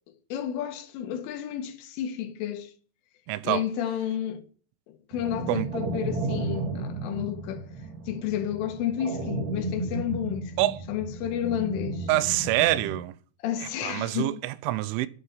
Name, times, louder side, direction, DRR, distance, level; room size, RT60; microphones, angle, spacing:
voice 1, 0.3-2.7 3.4-4.4 4.9-7.6 8.1-12.1 13.4-14.5, left 10 dB, 80° left, 4.0 m, -31 dB
voice 2, 3.3-3.6 5.5-5.7 10.6-10.8 12.1-13.1 13.6-15.1, right 17 dB, 80° right, 3.2 m, -26 dB
sound 1, 5.1-13.0, right 2 dB, 60° right, 3.9 m, -34 dB
9.6 x 9.3 x 9.6 m
omnidirectional pair, 5.7 m